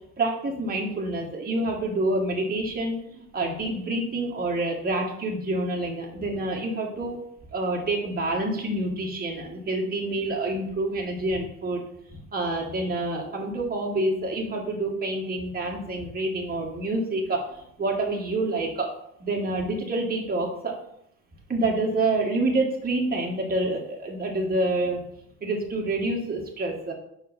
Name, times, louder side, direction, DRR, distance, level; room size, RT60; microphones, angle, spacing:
voice 1, 0.2-7.2 7.5-11.8 12.1-18.9 19.2-20.7 21.5-25.0 25.4-26.9, right 2 dB, 25° right, -1 dB, 1.8 m, -27 dB
5.4 x 4.8 x 5.1 m, 0.72 s
hypercardioid pair, 65°, 38 cm